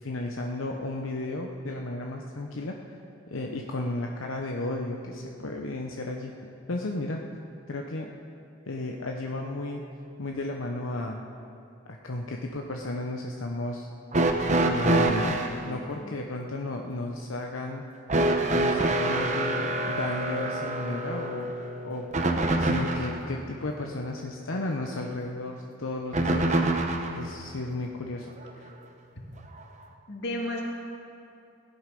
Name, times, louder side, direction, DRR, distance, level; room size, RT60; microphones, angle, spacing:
voice 1, 0.0-2.8 3.3-6.4 6.7-7.2 7.7-8.1 8.7-9.8 10.2-11.2 11.9-13.9 14.5-15.4 15.6-17.8 18.5-22.1 22.6-26.5 27.2-28.3, left 2 dB, 80° left, 1 dB, 0.9 m, -33 dB
sound 1, 14.1-15.6 18.1-23.2 26.1-27.2 28.4-28.5 29.6-29.7, right 2 dB, 35° right, 1.0 m, -26 dB
voice 2, 15.6-16.1 30.1-30.6, left 1 dB, 55° left, -1 dB, 2.1 m, -34 dB
17.0 x 11.0 x 5.3 m, 2.6 s
head